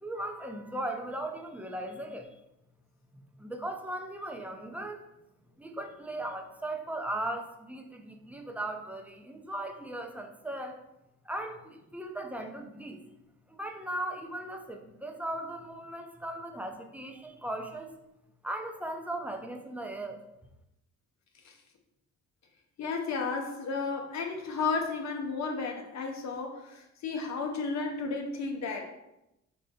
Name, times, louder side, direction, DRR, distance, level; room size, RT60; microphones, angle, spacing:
voice 1, 0.0-2.3 3.1-5.0 5.6-10.8 11.2-13.0 13.5-17.9 18.4-20.2, right 1 dB, 5° right, 3 dB, 0.6 m, -38 dB
voice 2, 22.8-29.0, left 4 dB, 65° left, 3 dB, 0.7 m, -33 dB
5.1 x 2.2 x 4.2 m, 0.87 s
cardioid pair, 90°, 30 cm